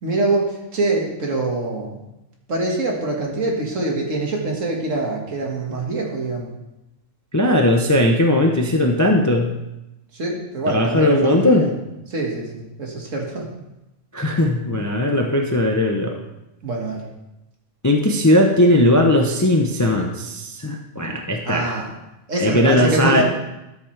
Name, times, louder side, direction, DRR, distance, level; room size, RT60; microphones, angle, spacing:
voice 1, 0.0-2.0 2.5-6.5 10.1-11.7 12.1-13.5 16.6-17.0 21.5-21.9 22.3-23.2, right 2 dB, 65° right, -1 dB, 2.1 m, -24 dB
voice 2, 7.3-9.5 10.7-11.7 14.1-16.2 17.8-21.8 22.4-23.2, left 1 dB, 20° left, 2 dB, 0.5 m, -18 dB
12.5 x 7.0 x 3.3 m, 0.93 s
omnidirectional pair, 1.4 m